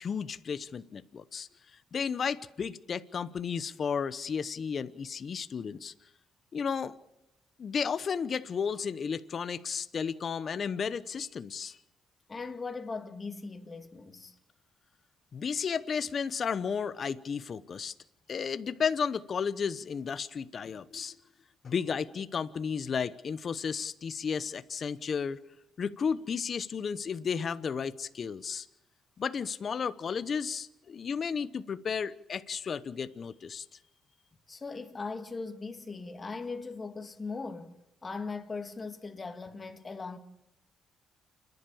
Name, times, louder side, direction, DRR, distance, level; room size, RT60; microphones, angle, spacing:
voice 1, 0.0-1.5 1.9-5.9 6.5-6.9 7.6-11.8 15.3-17.9 18.3-21.1 21.6-25.4 25.8-28.7 29.2-33.6, left 6 dB, 50° left, 0.9 m, -33 dB
voice 2, 12.3-14.3 34.5-37.7 38.0-40.2, left 4 dB, 30° left, 2.1 m, -39 dB
28.5 x 11.0 x 8.6 m
cardioid pair, 80°, 0 cm